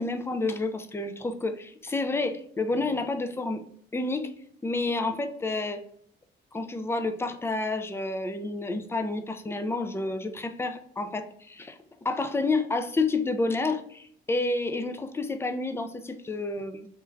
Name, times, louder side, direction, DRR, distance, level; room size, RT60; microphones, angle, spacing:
voice 1, 0.0-3.6 3.9-4.3 4.6-5.8 6.5-11.8 12.0-16.9, left 3 dB, 10° left, 8 dB, 0.3 m, -29 dB
3.1 x 2.3 x 2.4 m, 0.67 s
cardioid pair, 90°, 20 cm